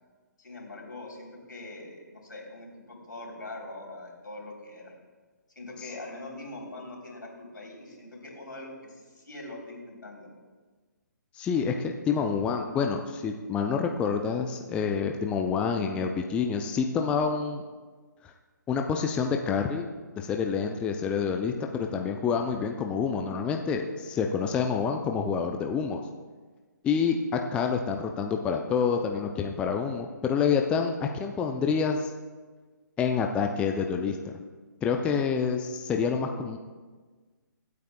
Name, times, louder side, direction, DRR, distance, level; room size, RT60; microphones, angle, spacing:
voice 1, 0.4-4.9 5.5-10.3, left 2 dB, 75° left, -1 dB, 3.3 m, -42 dB
voice 2, 11.3-17.6 18.2-18.3 18.7-19.9 20.2-26.0 26.8-32.1 33.0-34.2 34.8-36.6, left 6 dB, 10° left, 3 dB, 0.4 m, -27 dB
24.5 x 8.3 x 2.2 m, 1.4 s
figure-of-eight pair, 135°, 10 cm